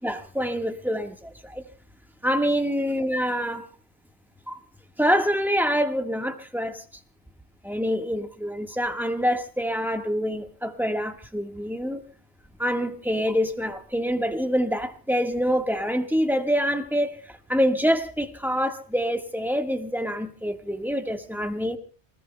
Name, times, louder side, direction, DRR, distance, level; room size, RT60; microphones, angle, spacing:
voice 1, 0.0-1.6 2.2-3.7 4.5-4.6 5.0-6.8 7.6-12.0 12.6-17.2 17.5-21.8, equal, ahead, 1.5 m, -26 dB
28.5 x 20.0 x 2.3 m
omnidirectional pair, 1.1 m